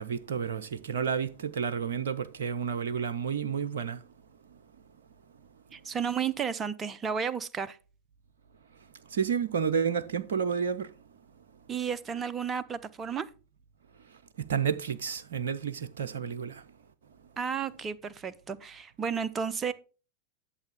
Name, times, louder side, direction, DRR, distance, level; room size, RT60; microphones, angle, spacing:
voice 1, 0.0-4.0 9.1-10.9 14.4-16.6, right 7 dB, 60° right, 0.6 m, -30 dB
voice 2, 5.7-7.8 11.7-13.3 17.4-19.7, right 7 dB, 20° right, 0.6 m, -32 dB
11.5 x 6.9 x 3.5 m
figure-of-eight pair, 90°, 0 cm